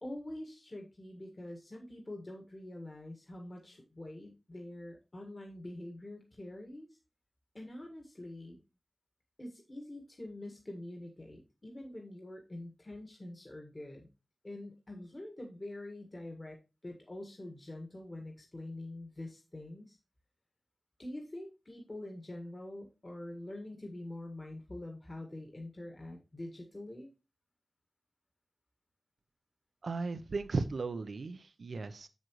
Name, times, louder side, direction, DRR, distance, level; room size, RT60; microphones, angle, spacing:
voice 1, 0.0-6.9 7.5-8.6 9.4-14.1 14.4-16.6 16.8-20.0 21.0-27.1, left 1 dB, 35° left, 2 dB, 1.6 m, -45 dB
voice 2, 29.8-32.1, right 3 dB, 90° right, 11 dB, 0.6 m, -36 dB
7.7 x 7.3 x 3.1 m, 0.28 s
wide cardioid pair, 75°, 0 cm